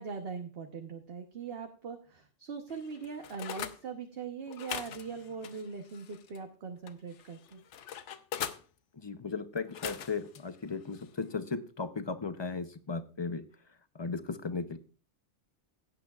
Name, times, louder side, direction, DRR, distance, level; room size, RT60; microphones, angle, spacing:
voice 1, 0.0-7.6, right 5 dB, 55° right, 4 dB, 1.2 m, -41 dB
sound 1, 2.7-3.8 4.5-6.4 6.9-8.6 9.6-10.4 10.9-11.1, left 9 dB, 75° left, 1.0 m, -42 dB
voice 2, 8.9-13.4 14.0-14.8, left 4 dB, 30° left, 10 dB, 0.5 m, -36 dB
16.0 x 9.1 x 2.4 m, 0.37 s
omnidirectional pair, 1.3 m